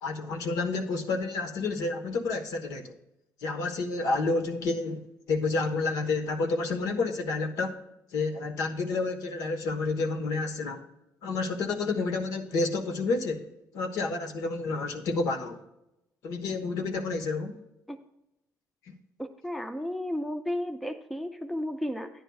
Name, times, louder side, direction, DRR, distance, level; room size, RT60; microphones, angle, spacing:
voice 1, 0.0-3.0 3.4-7.7 8.1-10.8 11.2-13.5 13.7-15.6 16.2-17.6 18.8-18.9, left 3 dB, 70° left, 4 dB, 1.2 m, -30 dB
voice 2, 19.2-22.1, left 1 dB, ahead, 8 dB, 0.4 m, -33 dB
12.5 x 9.9 x 2.3 m, 0.88 s
cardioid pair, 175°, 6 cm